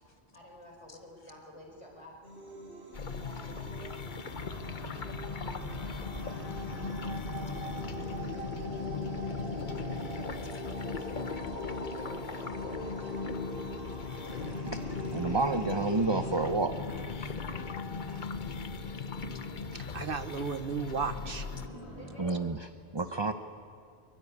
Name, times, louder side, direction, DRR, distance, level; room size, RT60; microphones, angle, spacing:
voice 1, 0.3-4.0 5.3-8.1 8.9-9.5 11.6-13.1 17.4-17.9 22.0-22.7, equal, 30° left, 0 dB, 4.9 m, -52 dB
sound 1, 2.2-16.4, right 2 dB, 80° right, 4.7 m, -45 dB
sound 2, 2.9-21.7, left 5 dB, 50° left, 1.1 m, -38 dB
sound 3, 4.3-22.2, left 1 dB, 90° left, 8.2 m, -47 dB
voice 2, 15.1-16.7 17.1-17.4 22.2-22.6 22.9-23.3, right 3 dB, 25° right, 8 dB, 0.8 m, -29 dB
voice 3, 19.7-21.5, right 5 dB, 60° right, 10 dB, 1.1 m, -34 dB
23.5 x 22.5 x 9.8 m, 2.3 s
omnidirectional pair, 1.1 m